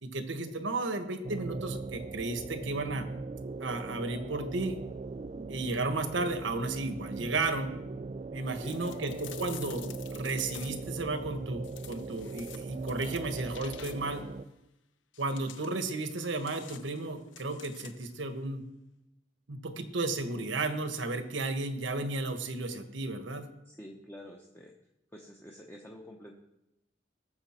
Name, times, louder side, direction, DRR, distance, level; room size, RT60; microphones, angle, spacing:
voice 1, 0.0-3.1 3.6-4.8 5.5-7.7 8.3-14.2 15.2-18.6 19.5-23.5, right 2 dB, 80° right, 8 dB, 1.3 m, -33 dB
sound 1, 1.2-14.4, right 3 dB, 35° right, 0.3 m, -40 dB
voice 2, 8.5-9.0 23.6-24.7 25.1-26.3, equal, 10° left, 0 dB, 0.9 m, -48 dB
sound 2, 8.6-11.0 11.6-14.3 15.1-18.2, left 10 dB, 80° left, 0.8 m, -50 dB
19.0 x 7.0 x 4.4 m, 0.91 s
head